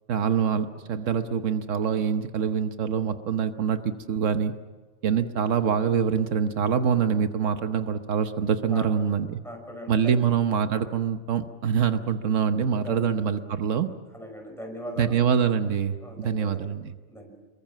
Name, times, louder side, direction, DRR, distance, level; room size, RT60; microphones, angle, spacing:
voice 1, 0.1-4.5 5.0-9.4 9.9-13.9 15.0-16.9, right 7 dB, 80° right, 9 dB, 1.3 m, -25 dB
voice 2, 9.4-10.2 12.8-13.1 14.1-15.1 16.0-16.7 17.1-17.3, equal, ahead, 2 dB, 5.7 m, -39 dB
27.5 x 22.5 x 7.4 m, 1.4 s
omnidirectional pair, 1.3 m